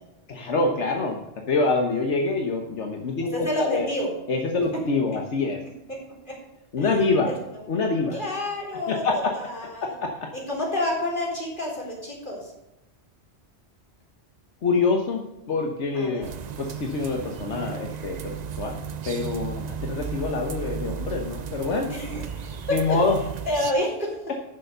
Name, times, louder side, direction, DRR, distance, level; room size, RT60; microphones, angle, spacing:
voice 1, 0.3-1.2 1.5-3.9 4.3-5.6 6.7-7.3 7.7-8.2 8.7-9.3 9.8-10.3 14.6-16.2 16.6-22.2 22.7-23.2, left 3 dB, 80° left, 2 dB, 1.5 m, -26 dB
voice 2, 3.2-4.1 6.2-6.3 6.8-7.3 8.1-9.0 9.3-10.0 10.5-12.5 15.9-16.3 21.9-22.6 23.5-24.3, left 1 dB, 45° left, -3 dB, 4.2 m, -29 dB
sound 1, 16.2-23.7, right 7 dB, 50° right, 0.6 m, -35 dB
10.5 x 6.9 x 6.7 m, 0.93 s
omnidirectional pair, 1.2 m